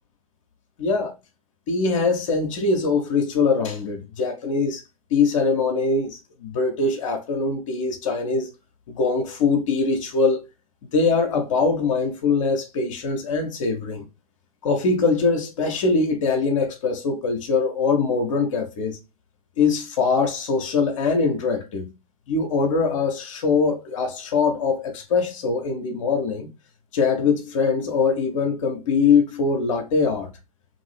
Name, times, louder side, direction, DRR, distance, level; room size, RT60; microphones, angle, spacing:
voice 1, 0.8-1.1 1.7-4.8 5.1-8.5 8.9-10.4 10.8-14.1 14.6-19.0 19.6-21.9 22.3-26.5 26.9-30.3, left 4 dB, 55° left, 0.7 m, -22 dB
2.6 x 2.6 x 3.1 m
figure-of-eight pair, 95°, 19 cm